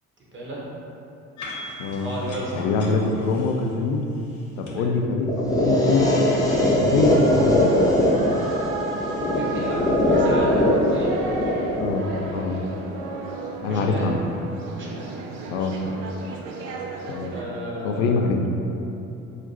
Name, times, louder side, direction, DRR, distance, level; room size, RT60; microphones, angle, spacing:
voice 1, 0.3-0.6 2.0-2.8 4.6-4.9 9.2-11.1 13.6-14.2 14.6-15.2 15.5-15.7 17.3-18.3, right 1 dB, 30° right, -5 dB, 1.0 m, -33 dB
sound 1, 1.4-4.7, left 2 dB, 45° left, 0.8 m, -39 dB
voice 2, 2.5-4.0 4.6-5.3 5.6-6.3 6.7-7.8 11.8-12.6 13.6-14.2 15.5-15.8 17.1-17.3 17.8-18.5, left 3 dB, 65° left, 3 dB, 0.5 m, -24 dB
sound 2, 5.3-13.3, left 1 dB, 10° left, 0.6 m, -21 dB
sound 3, 7.1-17.4, right 3 dB, 65° right, 0.5 m, -34 dB
5.0 x 2.2 x 2.7 m, 2.8 s
figure-of-eight pair, 50°, 40 cm